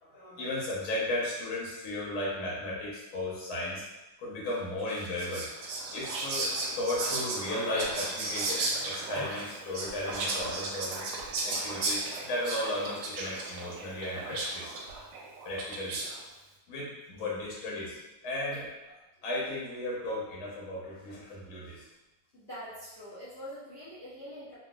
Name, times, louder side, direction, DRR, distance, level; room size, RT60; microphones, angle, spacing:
voice 1, 0.0-3.8 4.2-5.5 5.9-11.2 11.5-14.8 15.5-16.0 16.7-18.7 19.2-21.9, left 1 dB, 85° left, -6 dB, 1.8 m, -35 dB
Whispering, 4.9-16.2, right 3 dB, 75° right, 1.2 m, -35 dB
voice 2, 22.3-24.6, equal, 65° left, -11 dB, 0.5 m, -44 dB
3.9 x 2.3 x 2.3 m, 1.0 s
omnidirectional pair, 2.2 m